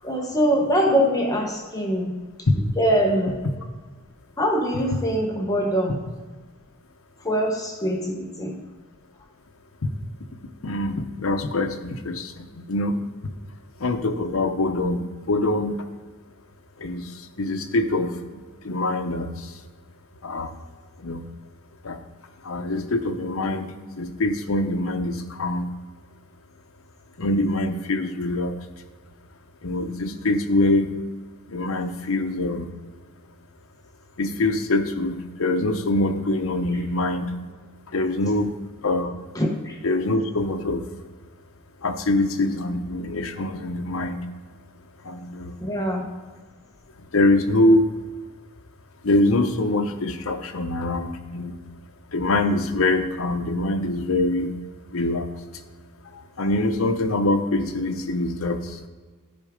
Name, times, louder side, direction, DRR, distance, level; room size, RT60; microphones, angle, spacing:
voice 1, 0.0-2.1 2.5-3.3 4.4-6.0 7.2-8.6 39.3-39.8 45.6-46.0, equal, 15° left, 0 dB, 1.2 m, -23 dB
voice 2, 10.6-12.9 13.8-15.8 16.8-17.0 17.4-18.1 18.6-19.3 20.2-20.5 21.0-21.2 21.8-22.0 22.5-25.7 27.2-28.5 29.6-30.9 31.5-32.7 34.2-37.3 37.9-38.5 38.8-39.2 39.8-40.8 41.8-44.2 45.1-45.5 47.1-47.8 49.0-51.6 52.1-54.5 54.9-55.3 56.4-58.6, left 2 dB, 75° left, 6 dB, 0.8 m, -24 dB
10.5 x 4.6 x 5.0 m, 1.4 s
head